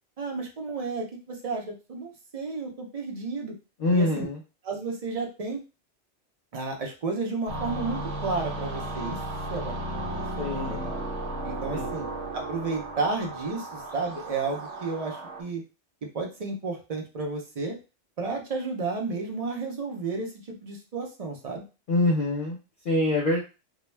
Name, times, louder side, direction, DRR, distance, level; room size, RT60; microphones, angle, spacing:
voice 1, 0.2-3.5 3.9-4.3 4.6-5.6 6.5-9.2 9.5-11.0 11.4-12.1 12.3-15.6 16.1-17.8 18.2-21.6, right 3 dB, 45° right, 2 dB, 0.5 m, -32 dB
voice 2, 3.8-4.4 10.4-10.9 11.7-11.9 21.9-22.6 22.8-23.4, left 2 dB, 55° left, -2 dB, 0.7 m, -25 dB
sound 1, 7.5-15.4, right 1 dB, 80° right, 1.0 m, -34 dB
2.2 x 2.1 x 3.2 m, 0.30 s
omnidirectional pair, 1.2 m